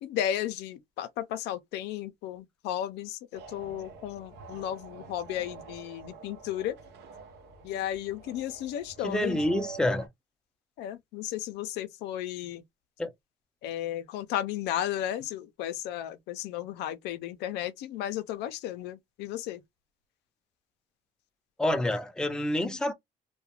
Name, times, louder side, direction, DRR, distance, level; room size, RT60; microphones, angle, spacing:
voice 1, 0.0-6.8 7.6-9.4 10.8-12.6 13.6-19.6, left 11 dB, 90° left, 0.4 m, -34 dB
sound 1, 3.3-10.1, right 5 dB, 80° right, 0.7 m, -47 dB
voice 2, 9.0-10.1 13.0-13.1 21.6-22.9, left 1 dB, 5° left, 0.4 m, -27 dB
2.3 x 2.1 x 2.8 m
cardioid pair, 110°, 17 cm